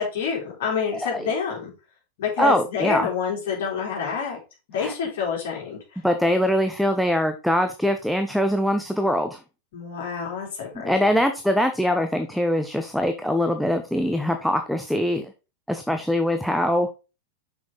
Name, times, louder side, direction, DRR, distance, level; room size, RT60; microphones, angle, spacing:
voice 1, 0.0-1.7 2.2-4.4 4.7-6.0 9.7-11.2, left 6 dB, 55° left, -2 dB, 3.3 m, -28 dB
voice 2, 0.9-1.3 2.4-3.1 4.8-4.9 6.0-9.4 10.8-15.3 15.7-16.9, equal, ahead, 5 dB, 0.7 m, -23 dB
6.1 x 6.0 x 3.8 m, 0.30 s
figure-of-eight pair, 90°, 0 cm